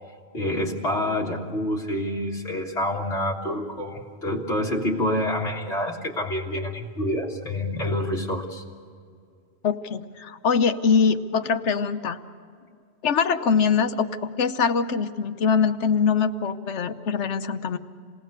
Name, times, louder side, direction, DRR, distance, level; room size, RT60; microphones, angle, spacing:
voice 1, 0.3-8.6, left 1 dB, 65° left, -3 dB, 2.2 m, -27 dB
voice 2, 9.6-12.2 13.0-17.8, left 6 dB, 85° left, 9 dB, 1.2 m, -23 dB
28.0 x 18.5 x 6.6 m, 2.2 s
omnidirectional pair, 1.2 m